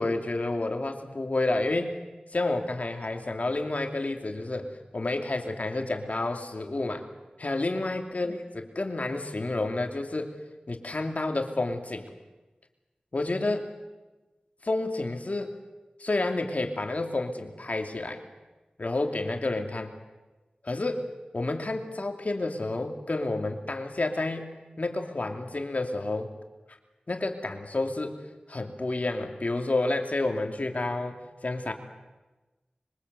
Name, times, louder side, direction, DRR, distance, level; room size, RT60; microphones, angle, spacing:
voice 1, 0.0-1.9 2.3-7.1 7.4-10.3 10.7-12.1 13.1-13.7 14.6-15.5 16.0-18.2 18.8-19.9 20.6-21.1 21.3-26.3 26.7-26.8 27.1-28.2 28.5-31.7, left 2 dB, 55° left, 4 dB, 2.7 m, -30 dB
25.5 x 23.5 x 8.1 m, 1.2 s
cardioid pair, 40°, 3 cm